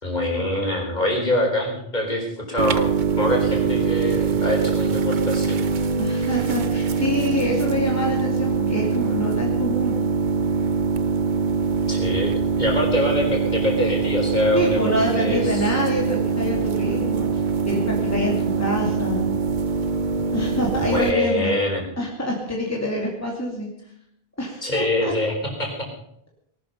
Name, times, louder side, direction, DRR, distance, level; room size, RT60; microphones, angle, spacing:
voice 1, 0.0-5.6 11.9-14.8 15.2-15.7 20.8-21.9 24.6-25.9, left 1 dB, 45° left, 0 dB, 4.6 m, -24 dB
sound 1, 2.6-21.1, right 5 dB, 50° right, 0.9 m, -23 dB
voice 2, 6.0-10.0 14.5-17.3 17.6-19.3 20.3-21.5 22.0-23.7 24.4-25.1, left 1 dB, 15° left, -1 dB, 2.7 m, -26 dB
19.0 x 12.5 x 5.5 m, 0.74 s
omnidirectional pair, 1.1 m